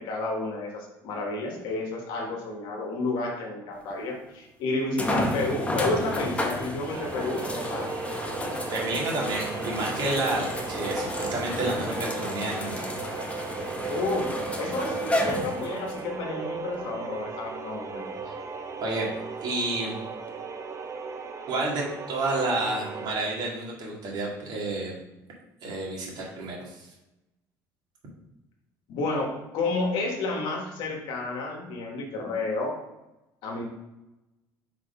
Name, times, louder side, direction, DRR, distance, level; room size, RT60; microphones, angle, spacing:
voice 1, 0.0-7.9 13.9-18.0 28.9-32.8 33.4-33.6, left 2 dB, 70° left, 0 dB, 1.4 m, -31 dB
sound 1, 3.9-4.0 5.0-16.0 16.7-16.8 20.3-20.4, left 1 dB, 15° left, 1.0 m, -32 dB
sound 2, 6.9-23.1, right 4 dB, 35° right, 0.8 m, -36 dB
voice 2, 8.7-12.8 18.8-19.1 19.4-20.0 21.5-25.0 25.6-26.9, right 2 dB, 55° right, -3 dB, 2.1 m, -30 dB
4.7 x 4.1 x 5.3 m, 0.97 s
supercardioid pair, 85°, 9 cm